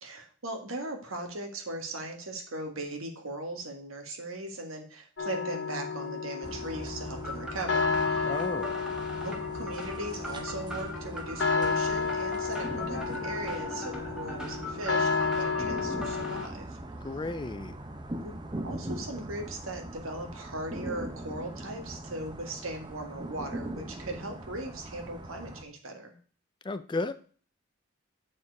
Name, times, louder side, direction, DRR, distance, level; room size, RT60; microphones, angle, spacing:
voice 1, 0.0-8.4 9.1-16.8 18.2-26.2, right 1 dB, 85° right, 3 dB, 1.7 m, -39 dB
sound 1, 5.2-16.4, left 5 dB, 60° left, 0.7 m, -32 dB
sound 2, 6.4-25.6, right 1 dB, 20° right, 0.6 m, -41 dB
sound 3, 7.2-16.5, equal, 5° right, 1.3 m, -41 dB
voice 2, 8.2-8.8 17.0-17.8 26.6-27.1, left 3 dB, 20° left, 13 dB, 0.3 m, -33 dB
7.4 x 4.5 x 4.7 m, 0.43 s
head